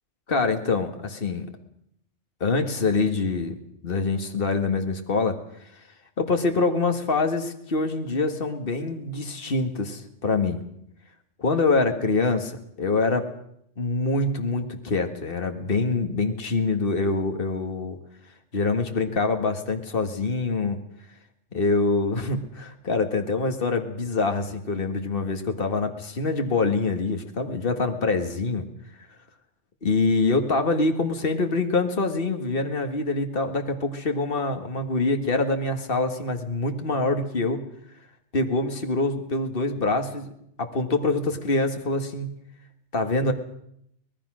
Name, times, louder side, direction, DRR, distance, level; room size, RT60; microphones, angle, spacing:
voice 1, 0.3-1.5 2.4-3.6 3.8-5.4 6.2-10.6 11.4-13.3 13.8-18.0 18.5-20.8 21.5-28.7 29.8-37.7 38.3-40.3 40.6-42.4 42.9-43.3, left 3 dB, 50° left, 5 dB, 2.1 m, -25 dB
25.0 x 19.5 x 6.3 m, 0.72 s
omnidirectional pair, 1.2 m